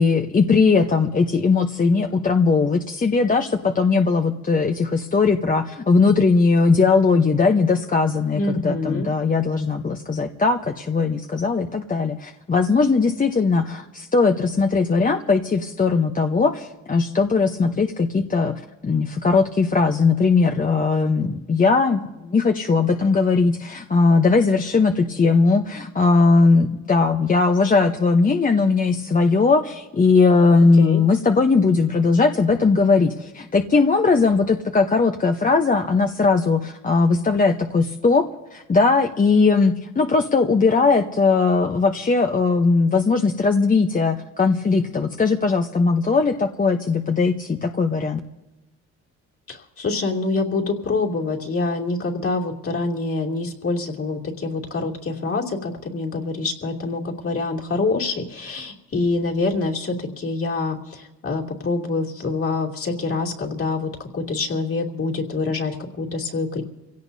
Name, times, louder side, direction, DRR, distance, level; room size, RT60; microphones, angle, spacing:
voice 1, 0.0-18.5 18.8-48.2, left 4 dB, 25° left, 4 dB, 0.9 m, -19 dB
voice 2, 8.3-9.1 30.8-31.0 49.5-66.6, left 3 dB, 50° left, -1 dB, 2.9 m, -26 dB
26.5 x 17.0 x 2.7 m, 1.1 s
cardioid pair, 90°, 30 cm